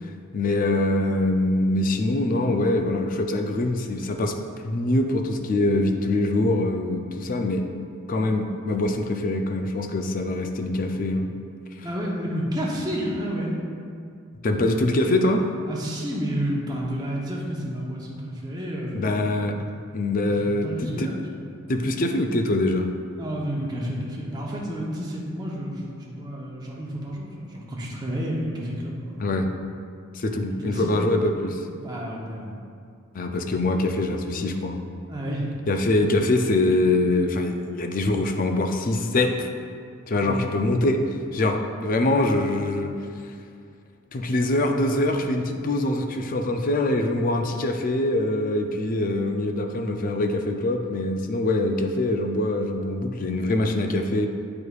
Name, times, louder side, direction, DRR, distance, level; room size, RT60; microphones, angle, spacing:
voice 1, 0.3-4.3 4.6-7.6 8.1-11.3 14.4-15.4 18.9-19.6 19.9-21.1 21.7-22.9 29.2-29.5 30.1-31.7 33.1-34.8 35.7-39.5 40.1-41.0 41.3-42.9 44.1-54.3, left 2 dB, 40° left, 5 dB, 0.4 m, -24 dB
voice 2, 11.8-13.5 15.7-19.3 20.4-21.5 23.2-29.4 30.6-31.2 31.7-32.5 35.1-35.5 40.2-40.4, equal, 20° right, -4 dB, 0.8 m, -30 dB
8.4 x 4.7 x 2.4 m, 2.3 s
head